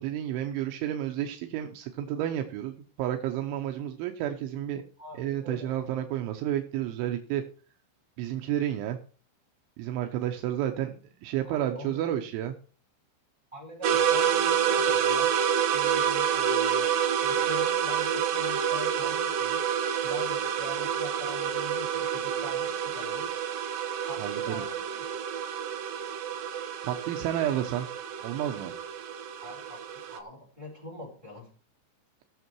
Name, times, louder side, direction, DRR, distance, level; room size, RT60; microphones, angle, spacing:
voice 1, 0.0-4.8 5.1-7.4 8.2-9.0 9.8-12.5 24.2-24.7 26.8-27.9 28.2-28.7, right 11 dB, 85° right, 5 dB, 3.3 m, -31 dB
voice 2, 5.0-5.7 11.4-12.1 13.5-15.3 15.7-16.9 17.2-19.6 20.0-23.3 24.0-25.0 29.4-31.5, left 2 dB, 5° right, 0 dB, 4.1 m, -43 dB
sound 1, 13.8-30.2, right 8 dB, 65° right, 2.4 m, -28 dB
17.0 x 6.9 x 4.6 m, 0.38 s
omnidirectional pair, 5.4 m